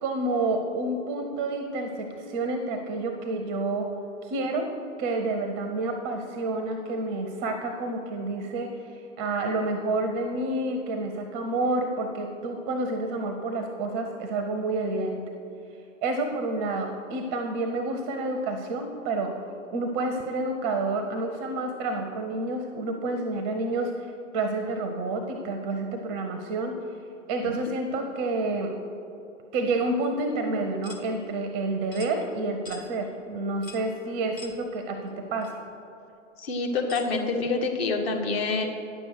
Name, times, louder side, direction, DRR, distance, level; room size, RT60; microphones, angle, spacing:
voice 1, 0.0-3.9 4.2-4.7 5.0-15.2 16.0-19.3 19.7-26.7 27.3-28.7 29.5-35.6, right 2 dB, 20° right, 5 dB, 0.5 m, -29 dB
sound 1, 30.8-31.1 31.9-32.1 32.7-32.9 33.6-33.9 34.4-34.6 35.4-35.5 36.9-37.1, left 3 dB, 85° left, 1.3 m, -43 dB
voice 2, 36.4-38.6, left 3 dB, 50° left, 2 dB, 1.4 m, -27 dB
9.5 x 6.9 x 6.5 m, 2.8 s
figure-of-eight pair, 105°, 39 cm